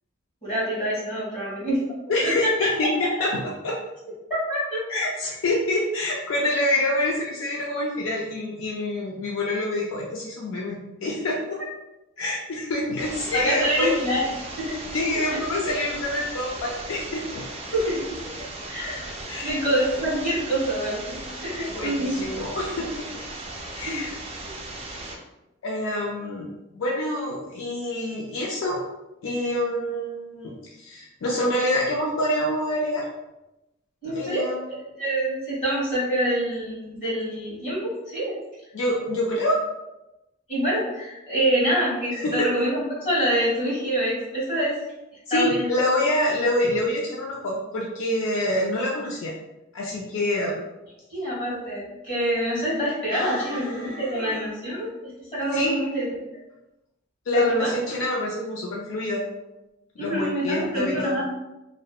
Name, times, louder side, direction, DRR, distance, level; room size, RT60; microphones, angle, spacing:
voice 1, 0.4-1.8 2.2-2.7 4.5-4.8 13.3-14.2 14.6-14.8 15.3-15.4 17.7-18.0 18.7-19.1 19.4-22.1 23.8-24.0 34.0-34.4 34.7-38.3 40.5-44.8 45.3-45.7 51.1-56.1 57.3-57.7 60.0-61.2, equal, 40° left, -8 dB, 1.3 m, -26 dB
voice 2, 2.1-2.9 3.2-3.3 3.6-3.7 4.9-11.6 12.2-13.9 14.9-17.4 19.3-19.6 21.7-23.0 23.7-24.1 25.6-26.5 26.7-28.8 29.2-33.0 34.0-34.6 38.7-39.6 42.1-42.5 45.3-49.4 49.7-50.6 53.1-54.4 55.5-55.8 57.3-59.2 60.0-61.2, left 1 dB, 80° left, -3 dB, 0.4 m, -26 dB
sound 1, 13.0-25.2, right 2 dB, 30° right, 0.4 m, -37 dB
2.7 x 2.1 x 2.2 m, 0.96 s
head